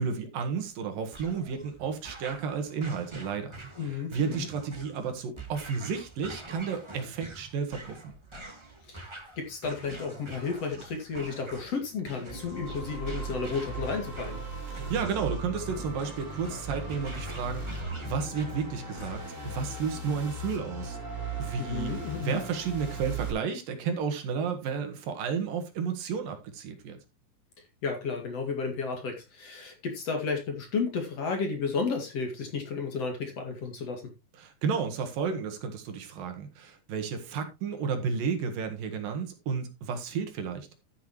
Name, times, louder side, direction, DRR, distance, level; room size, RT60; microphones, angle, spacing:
voice 1, 0.0-8.1 14.7-21.0 21.4-27.0 34.4-40.7, right 6 dB, 75° right, 3.3 m, -32 dB
sound 1, 1.1-19.5, right 2 dB, 50° right, 0.3 m, -46 dB
voice 2, 3.8-4.5 8.9-9.1 9.4-14.4 21.6-22.4 27.8-34.0, left 5 dB, 50° left, 3.1 m, -32 dB
sound 2, 12.3-23.3, right 2 dB, 20° right, 5.8 m, -38 dB
11.5 x 9.4 x 3.1 m
omnidirectional pair, 4.1 m